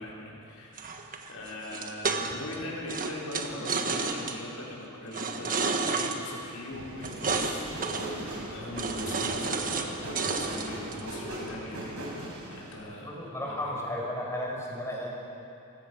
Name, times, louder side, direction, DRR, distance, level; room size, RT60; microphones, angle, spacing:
voice 1, 0.0-13.7, left 1 dB, 85° left, -4 dB, 5.6 m, -41 dB
sound 1, 0.8-2.6 2.9-4.4 5.1-6.2 7.0-7.6 7.8-8.1 8.8-9.9 10.2-11.0, right 4 dB, 40° right, 1.6 m, -31 dB
sound 2, 6.7-12.8, right 1 dB, 75° right, 5.3 m, -38 dB
voice 2, 13.0-15.1, left 1 dB, 15° left, -3 dB, 5.6 m, -34 dB
29.0 x 17.0 x 6.5 m, 2.7 s
head